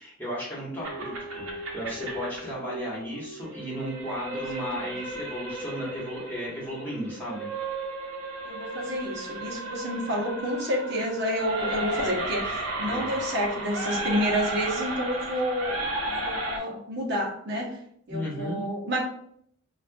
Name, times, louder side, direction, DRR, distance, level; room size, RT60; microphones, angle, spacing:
voice 1, 0.0-7.5 12.8-13.2 18.1-18.6, equal, 10° left, -8 dB, 1.2 m, -35 dB
sound 1, 0.8-16.6, right 1 dB, 80° right, 0.7 m, -34 dB
voice 2, 8.4-15.8 16.0-17.8 18.1-19.0, equal, 50° right, -2 dB, 0.9 m, -29 dB
4.2 x 2.4 x 2.2 m, 0.67 s
head